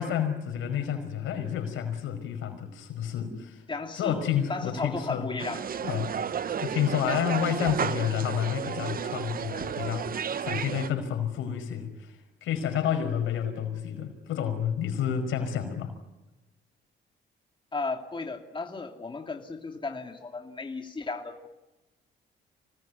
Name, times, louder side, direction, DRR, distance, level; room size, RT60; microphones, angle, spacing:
voice 1, 0.0-3.6 4.0-5.4 5.8-6.1 6.6-15.9, left 9 dB, 85° left, 6 dB, 5.3 m, -30 dB
voice 2, 3.7-4.2 4.5-5.7 17.7-21.5, left 3 dB, 25° left, 4 dB, 2.6 m, -35 dB
sound 1, 5.4-10.9, right 8 dB, 45° right, 0.9 m, -32 dB
25.5 x 19.0 x 9.5 m, 1.0 s
cardioid pair, 90°, 20 cm